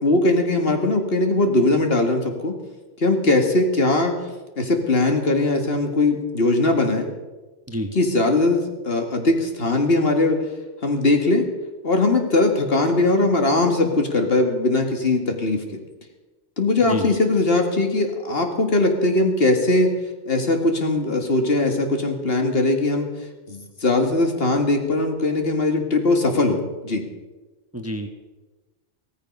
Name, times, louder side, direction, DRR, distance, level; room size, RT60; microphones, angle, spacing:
voice 1, 0.0-2.5 3.0-4.2 4.6-7.1 7.9-10.4 10.8-11.5 11.8-15.6 16.6-19.9 20.3-23.1 23.5-27.0, left 2 dB, 50° left, 4 dB, 2.1 m, -20 dB
voice 2, 27.7-28.1, equal, 10° right, 5 dB, 1.1 m, -28 dB
16.0 x 14.5 x 5.4 m, 1.2 s
omnidirectional pair, 1.3 m